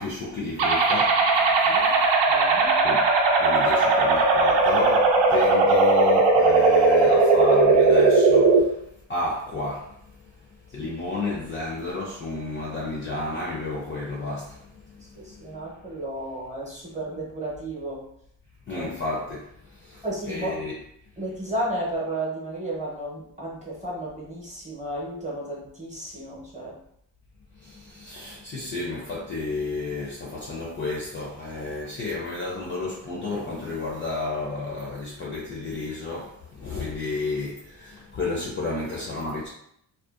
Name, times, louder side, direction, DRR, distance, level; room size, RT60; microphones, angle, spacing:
voice 1, 0.0-1.7 2.8-3.1 3.4-8.8 9.1-10.0 10.7-15.5 18.7-20.8 27.5-39.5, left 3 dB, 30° left, 0.4 m, -31 dB
sound 1, 0.6-8.6, right 3 dB, 75° right, 0.6 m, -18 dB
voice 2, 1.6-2.0 2.3-2.7 10.8-10.9 15.2-18.0 18.7-18.9 20.0-20.6 21.2-26.8, right 1 dB, 15° right, 0.7 m, -33 dB
2.6 x 2.2 x 2.4 m
cardioid pair, 135°, 46 cm